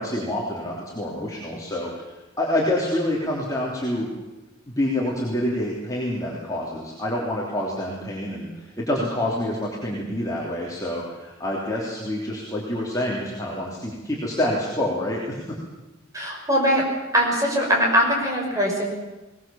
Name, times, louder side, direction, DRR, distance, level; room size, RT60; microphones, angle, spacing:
voice 1, 0.0-1.9 2.4-4.1 4.8-15.4, left 1 dB, 20° left, -5 dB, 3.3 m, -27 dB
voice 2, 16.1-16.8 17.1-18.9, equal, 15° right, -1 dB, 5.9 m, -21 dB
22.5 x 19.0 x 7.2 m, 1.1 s
head